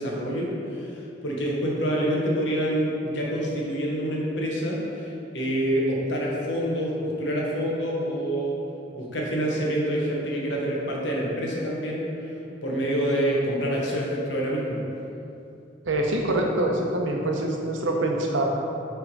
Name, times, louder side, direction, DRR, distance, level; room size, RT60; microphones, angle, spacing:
voice 1, 0.0-8.6 8.9-12.1 12.6-14.8, equal, 65° left, -3 dB, 1.2 m, -27 dB
voice 2, 15.8-18.5, right 1 dB, 85° right, 1 dB, 0.8 m, -25 dB
5.7 x 3.6 x 5.3 m, 2.8 s
head